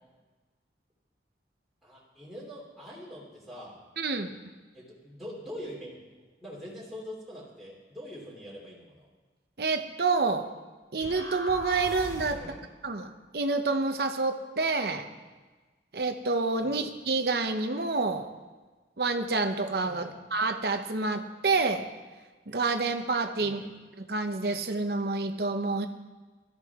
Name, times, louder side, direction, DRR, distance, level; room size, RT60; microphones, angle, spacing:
voice 1, 1.8-3.8 4.7-6.0 6.4-9.1 12.3-12.6 14.9-15.1 16.6-16.9 19.8-20.2 23.4-23.7, equal, ahead, -7 dB, 3.1 m, -44 dB
voice 2, 4.0-4.4 9.6-10.5 10.9-12.4 12.8-15.1 15.9-18.3 19.0-21.9 22.5-23.6 24.0-25.9, right 3 dB, 60° right, 6 dB, 0.8 m, -28 dB
sound 1, 11.0-12.6, left 1 dB, 20° left, 1.2 m, -40 dB
18.0 x 12.5 x 3.7 m, 1.3 s
head